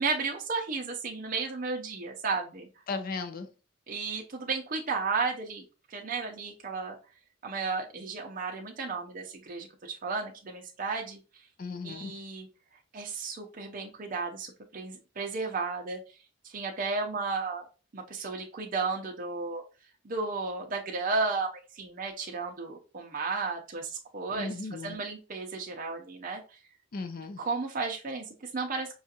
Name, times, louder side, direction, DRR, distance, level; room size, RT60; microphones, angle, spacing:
voice 1, 0.0-2.7 3.9-5.6 5.9-7.0 7.4-11.2 11.8-12.5 12.9-16.0 16.4-17.7 17.9-19.6 20.0-26.4 27.4-28.9, right 4 dB, 45° right, 0 dB, 0.6 m, -33 dB
voice 2, 2.9-3.5 11.6-12.1 24.4-25.0 26.9-27.4, left 3 dB, 45° left, 8 dB, 0.5 m, -36 dB
5.4 x 2.4 x 2.8 m, 0.33 s
head